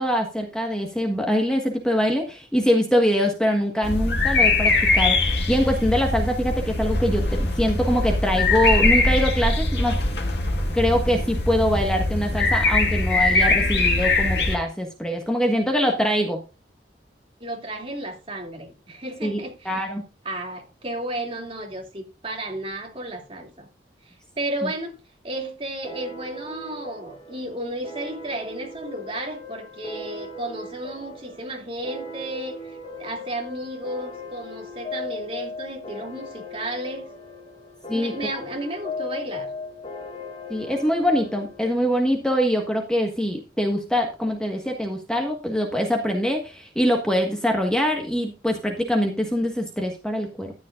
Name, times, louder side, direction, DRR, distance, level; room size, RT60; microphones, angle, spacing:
voice 1, 0.0-10.0 10.7-16.4 19.2-19.4 19.6-20.0 24.6-24.7 37.9-38.1 40.5-50.5, equal, 5° left, 1.5 m, -23 dB
sound 1, 3.8-14.6, left 2 dB, 70° left, 2.4 m, -22 dB
voice 2, 17.4-19.9 20.2-23.7 24.0-25.0 25.2-37.1 37.9-39.5, right 1 dB, 30° right, 2.8 m, -33 dB
sound 2, 25.8-42.9, left 2 dB, 30° left, 1.7 m, -38 dB
13.5 x 9.7 x 2.5 m
head